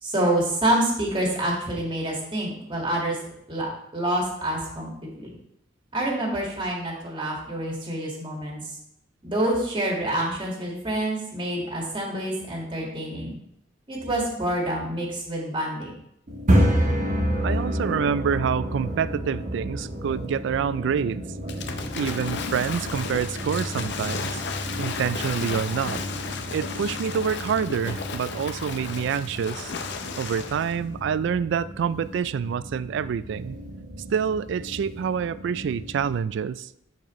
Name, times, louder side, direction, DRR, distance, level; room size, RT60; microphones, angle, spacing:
voice 1, 0.0-3.2 3.5-4.9 5.2-5.3 5.9-8.6 9.2-13.4 13.9-15.9, right 1 dB, 25° right, -2 dB, 1.8 m, -27 dB
sound 1, 16.3-36.2, equal, 40° right, 1.2 m, -30 dB
voice 2, 17.4-21.2 21.9-24.4 24.8-26.0 26.5-29.7 30.2-33.6 34.1-36.7, right 7 dB, 65° right, 17 dB, 0.3 m, -27 dB
Waves surf / Splash splatter, 21.5-30.8, left 5 dB, 65° left, 0.6 m, -34 dB
10.5 x 4.4 x 3.1 m, 0.77 s
head